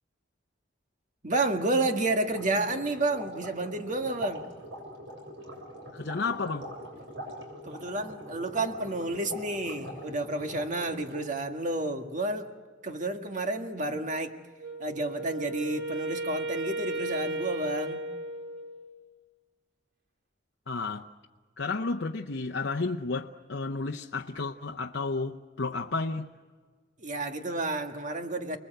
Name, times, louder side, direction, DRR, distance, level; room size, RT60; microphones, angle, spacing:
voice 1, 1.2-4.4 7.7-12.5 12.8-14.4 14.8-18.0 27.0-28.6, right 2 dB, 45° right, 1.8 m, -30 dB
sound 1, 1.9-11.4, equal, 75° right, 7.0 m, -43 dB
voice 2, 5.9-6.7 20.7-21.1 21.6-26.3, left 3 dB, 75° left, 0.8 m, -32 dB
Wind instrument woodwind instrument, 14.6-19.0, right 2 dB, 60° right, 3.0 m, -35 dB
29.5 x 20.5 x 7.9 m
head